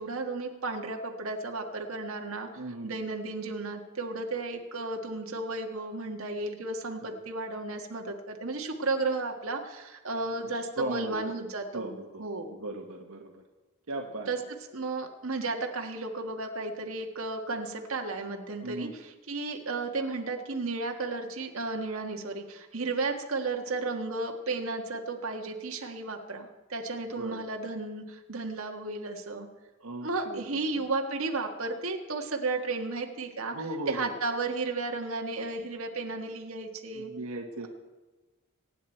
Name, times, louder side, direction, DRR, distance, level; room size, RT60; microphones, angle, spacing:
voice 1, 0.0-12.6 14.3-14.4 14.7-29.5 30.0-33.6 33.9-37.1, right 3 dB, 70° right, 2 dB, 1.7 m, -33 dB
voice 2, 2.6-2.9 7.0-7.1 10.3-11.1 11.7-13.4 13.9-14.3 18.6-18.9 27.2-27.4 29.8-30.9 33.4-34.1 36.9-37.7, right 2 dB, 90° right, 2 dB, 1.4 m, -37 dB
23.5 x 9.5 x 4.5 m, 1.2 s
head